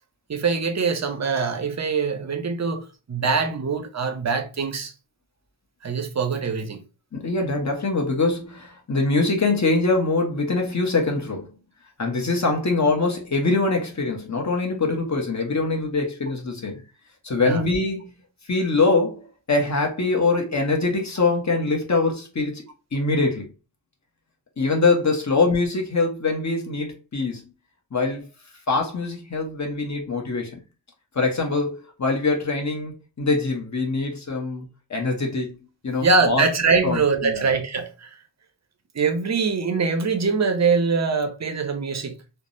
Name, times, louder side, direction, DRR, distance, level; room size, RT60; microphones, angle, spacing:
voice 1, 0.3-4.9 5.8-6.8 17.4-17.6 36.0-38.1 38.9-42.2, right 4 dB, 35° right, 0.6 m, -23 dB
voice 2, 7.1-11.5 12.0-16.8 17.2-18.1 18.5-22.6 22.9-23.5 24.6-27.5 27.9-28.2 28.7-30.6 31.1-31.7 32.0-35.6 35.8-36.4 36.8-37.5, left 3 dB, 35° left, 0.9 m, -23 dB
3.3 x 2.1 x 2.6 m
wide cardioid pair, 65°, 49 cm